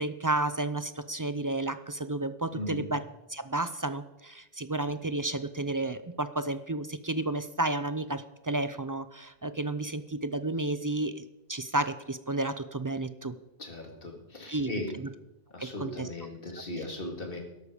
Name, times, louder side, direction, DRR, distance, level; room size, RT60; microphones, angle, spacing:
voice 1, 0.0-3.0 3.3-11.2 11.5-13.4 14.5-15.1 15.6-16.1 16.8-16.9, right 2 dB, 30° right, 12 dB, 0.3 m, -32 dB
voice 2, 2.5-2.9 13.6-15.0 15.5-17.4, left 1 dB, 60° left, 3 dB, 2.4 m, -37 dB
13.0 x 12.0 x 5.0 m, 0.94 s
omnidirectional pair, 1.1 m